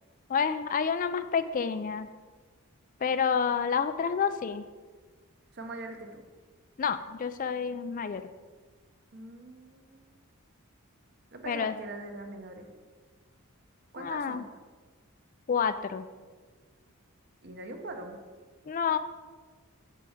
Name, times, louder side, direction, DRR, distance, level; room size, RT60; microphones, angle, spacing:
voice 1, 0.3-2.1 3.0-4.7 6.8-8.2 11.5-11.8 14.0-14.4 15.5-16.0 18.7-19.0, left 6 dB, 40° left, 11 dB, 0.3 m, -29 dB
voice 2, 5.5-6.2 9.1-10.2 11.3-12.7 13.9-14.4 17.4-18.2, right 2 dB, 50° right, 5 dB, 1.0 m, -42 dB
7.5 x 6.8 x 4.9 m, 1.4 s
head